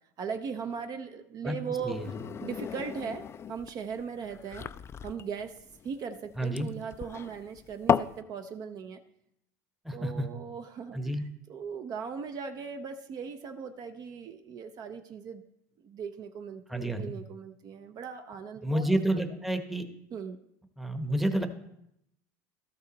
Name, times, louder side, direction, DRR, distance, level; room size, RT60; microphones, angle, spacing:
voice 1, 0.2-4.7 5.0-5.6 5.8-9.0 9.9-15.4 15.8-19.2 20.1-20.4, right 6 dB, 45° right, 8 dB, 0.6 m, -39 dB
sound 1, 1.7-8.2, left 8 dB, 25° left, 0.3 m, -34 dB
voice 2, 6.4-6.7 9.8-10.3 10.9-11.2 16.7-17.1 18.6-19.9 20.8-21.5, right 1 dB, ahead, 7 dB, 0.9 m, -29 dB
13.0 x 5.5 x 4.0 m, 0.79 s
hypercardioid pair, 95°, 9 cm